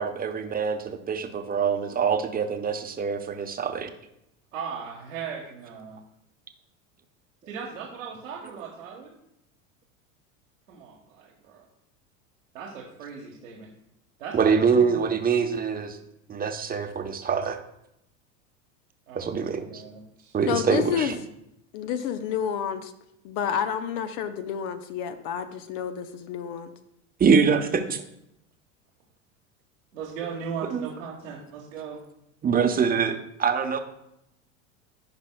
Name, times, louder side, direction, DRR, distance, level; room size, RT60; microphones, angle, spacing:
voice 1, 0.0-3.9 14.3-16.0 16.3-17.6 19.1-19.8 20.3-21.1 27.2-28.0 30.7-30.9 32.4-33.8, right 6 dB, 20° right, 6 dB, 0.9 m, -24 dB
voice 2, 4.5-6.0 7.5-9.1 10.7-11.7 12.5-13.7 14.2-15.0 19.1-20.3 29.9-32.0, right 6 dB, 80° right, -2 dB, 1.4 m, -38 dB
voice 3, 20.5-21.2 21.7-22.9 23.2-26.7, left 8 dB, 55° left, 9 dB, 0.8 m, -29 dB
15.5 x 5.2 x 2.3 m, 0.80 s
hypercardioid pair, 85°, 39 cm